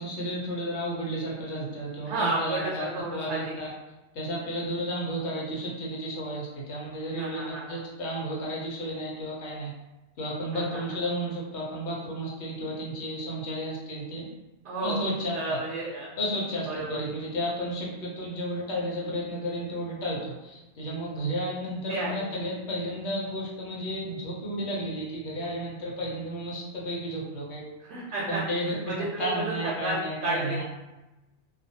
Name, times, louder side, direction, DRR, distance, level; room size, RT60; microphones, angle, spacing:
voice 1, 0.0-3.7 4.1-9.7 10.2-14.3 14.8-15.6 16.2-16.7 17.0-27.6 28.3-28.7 29.2-30.6, equal, 80° left, -3 dB, 1.0 m, -32 dB
voice 2, 2.1-3.5 7.2-7.8 10.5-10.8 14.6-15.0 15.3-16.1 16.7-17.0 21.9-22.3 27.8-30.6, right 2 dB, 90° right, -4 dB, 0.9 m, -32 dB
2.4 x 2.2 x 2.7 m, 1.0 s
omnidirectional pair, 1.1 m